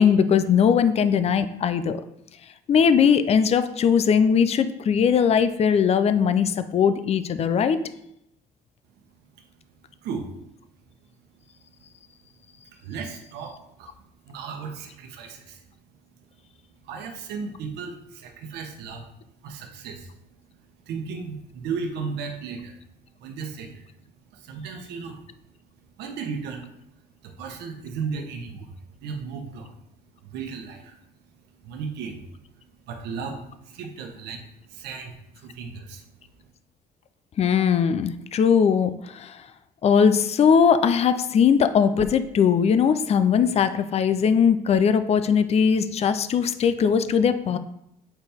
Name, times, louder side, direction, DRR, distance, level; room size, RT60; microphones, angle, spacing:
voice 1, 0.0-2.0 2.7-7.8 37.4-39.4 39.8-47.6, left 7 dB, 40° left, 11 dB, 0.5 m, -20 dB
voice 2, 12.7-13.9 14.3-15.6 16.8-19.1 19.4-20.1 20.9-22.8 23.2-23.9 24.3-25.2 26.0-26.7 27.2-28.7 29.0-29.7 30.2-31.0 31.6-32.3 32.9-36.0 36.4-36.5, right 5 dB, 80° right, 3 dB, 1.0 m, -35 dB
7.9 x 4.4 x 3.5 m, 0.80 s
cardioid pair, 110°, 17 cm